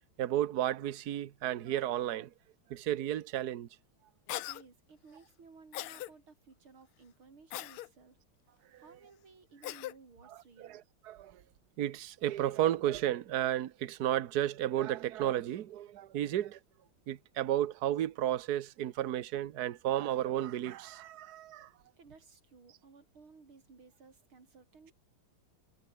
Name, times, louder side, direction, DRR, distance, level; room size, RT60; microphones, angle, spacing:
voice 1, 0.2-2.3 2.7-3.7 8.7-8.8 10.6-11.4 11.8-16.6 17.1-21.7, right 12 dB, 55° right, 1.3 m, -33 dB
Cough, 4.3-4.6 5.7-6.1 7.5-7.9 9.6-9.9, left 15 dB, 85° left, 1.7 m, -39 dB
voice 2, 4.3-8.2 8.8-10.8 22.0-24.9, right 4 dB, 75° right, 4.8 m, -57 dB
omnidirectional pair, 2.3 m